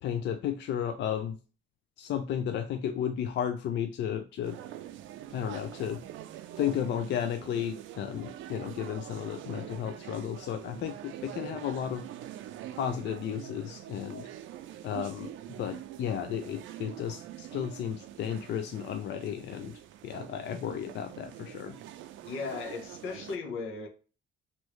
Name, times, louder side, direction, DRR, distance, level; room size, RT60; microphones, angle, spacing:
voice 1, 0.0-1.4 2.0-4.6 5.3-6.0 6.6-12.1 12.8-14.3 14.8-15.3 15.6-21.8, left 9 dB, 65° left, 0.4 m, -33 dB
sound 1, 4.4-23.4, right 12 dB, 80° right, 0.4 m, -45 dB
voice 2, 22.2-23.9, left 4 dB, 85° left, 0.9 m, -36 dB
3.0 x 2.7 x 3.0 m
cardioid pair, 90°, 20 cm